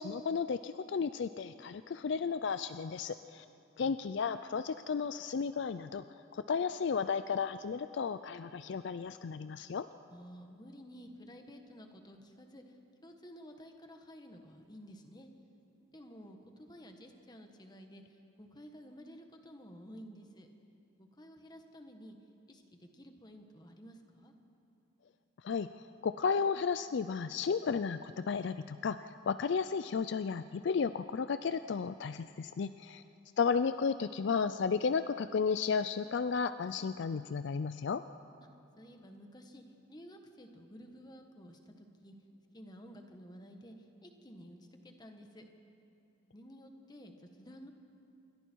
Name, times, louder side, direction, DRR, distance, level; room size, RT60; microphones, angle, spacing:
voice 1, 0.0-3.4 3.8-6.0 6.3-9.9 25.4-25.7 26.0-29.0 29.3-33.0 33.4-38.0, left 5 dB, 60° left, 12 dB, 0.4 m, -33 dB
voice 2, 3.1-3.8 10.0-12.8 13.0-15.3 15.8-20.5 21.0-22.2 22.5-24.3 32.8-33.3 38.8-39.6 39.9-42.1 42.5-45.4 46.2-47.7, equal, 20° left, 4 dB, 1.5 m, -53 dB
27.5 x 23.0 x 4.6 m, 2.6 s
head